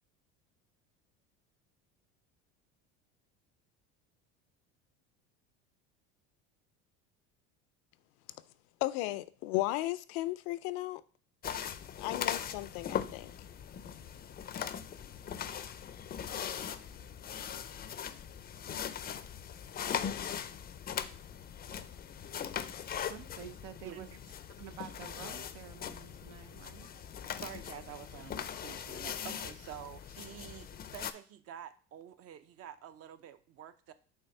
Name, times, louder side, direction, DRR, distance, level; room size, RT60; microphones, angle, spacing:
voice 1, 8.8-11.0 12.0-13.3, left 17 dB, 75° left, 0.5 m, -35 dB
sound 1, 11.4-31.1, left 8 dB, 30° left, 0.5 m, -40 dB
voice 2, 23.0-24.1 24.6-27.1, right 10 dB, 80° right, 0.8 m, -49 dB
voice 3, 27.4-33.9, right 10 dB, 45° right, 0.7 m, -48 dB
5.7 x 3.5 x 5.9 m
supercardioid pair, 100°, 33 cm